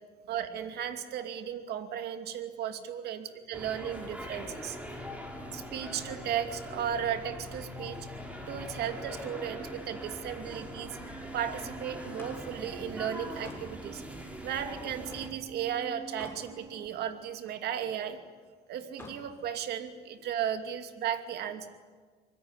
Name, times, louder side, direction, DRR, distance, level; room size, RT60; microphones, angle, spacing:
voice 1, 0.3-3.2 3.5-4.8 5.5-8.1 8.5-11.0 11.3-18.2 18.7-21.7, right 9 dB, 75° right, 8 dB, 2.6 m, -35 dB
sound 1, 3.5-15.3, equal, 10° right, 5.2 m, -43 dB
sound 2, 4.6-16.9, right 1 dB, 30° right, 4.6 m, -49 dB
Slam, 11.9-15.4 15.8-16.5 16.9-18.0 18.8-19.3, left 2 dB, 15° left, 7.2 m, -50 dB
25.5 x 21.5 x 9.7 m, 1.6 s
cardioid pair, 110°, 17 cm